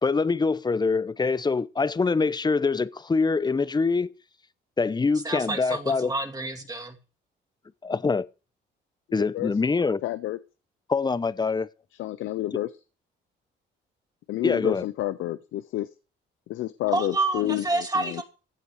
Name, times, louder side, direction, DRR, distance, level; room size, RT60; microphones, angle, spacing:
voice 1, 0.0-4.1 4.8-6.1 7.8-8.3 9.1-10.0 10.9-11.7 14.4-14.8, left 4 dB, 20° left, 0.8 m, -24 dB
voice 2, 5.2-7.0 16.9-18.2, right 2 dB, 20° right, 2.5 m, -28 dB
voice 3, 10.0-10.4 12.0-12.7 14.3-15.9 16.5-18.2, left 15 dB, 85° left, 0.8 m, -29 dB
15.5 x 8.2 x 4.9 m
cardioid pair, 90°, 20 cm